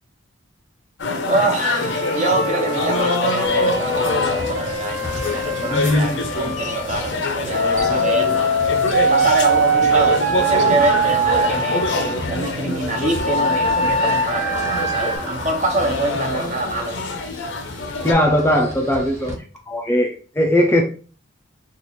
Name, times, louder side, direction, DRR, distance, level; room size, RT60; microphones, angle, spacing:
sound 1, 1.0-18.1, left 3 dB, 65° left, 0.6 m, -25 dB
voice 1, 1.3-8.8 9.1-11.9 12.3-17.0, right 2 dB, 35° right, 0.7 m, -25 dB
Wind instrument woodwind instrument, 1.8-6.8 7.5-12.2 12.9-15.2, right 2 dB, 60° right, 1.0 m, -22 dB
sound 2, 3.5-19.3, equal, 15° right, 1.0 m, -36 dB
voice 2, 5.7-6.2 18.0-19.4 19.7-20.8, left 1 dB, 10° left, 0.4 m, -19 dB
3.1 x 2.4 x 4.1 m
head